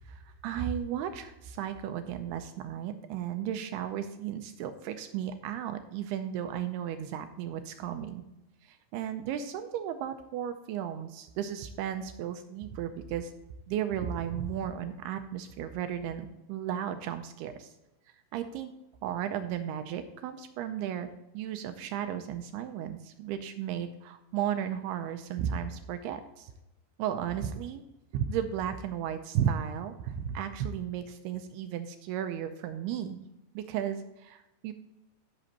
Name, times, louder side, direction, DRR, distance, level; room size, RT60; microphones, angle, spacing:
voice 1, 0.1-8.2 8.6-13.3 13.7-17.7 18.3-18.7 19.0-21.1 21.3-26.5 27.0-27.8 28.1-33.2 33.5-34.7, right 9 dB, 85° right, 8 dB, 2.4 m, -34 dB
16.0 x 6.1 x 2.9 m, 0.93 s
omnidirectional pair, 5.0 m